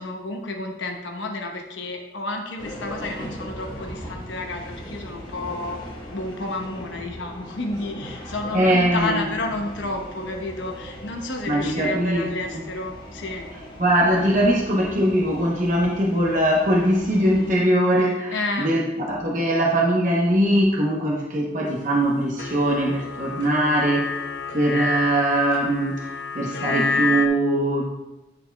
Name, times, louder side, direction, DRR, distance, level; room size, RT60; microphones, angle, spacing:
voice 1, 0.0-5.8 6.1-13.4 18.3-18.8, left 2 dB, 85° left, 2 dB, 0.9 m, -31 dB
sound 1, 2.6-17.5, equal, 20° left, 1.1 m, -39 dB
voice 2, 8.5-9.3 11.5-12.3 12.5-12.7 13.8-24.1 24.5-26.1 26.3-27.8, right 1 dB, 40° right, -2 dB, 0.9 m, -21 dB
sound 2, 22.4-27.3, left 5 dB, 60° left, 0.5 m, -28 dB
10.0 x 6.9 x 2.3 m, 0.97 s
head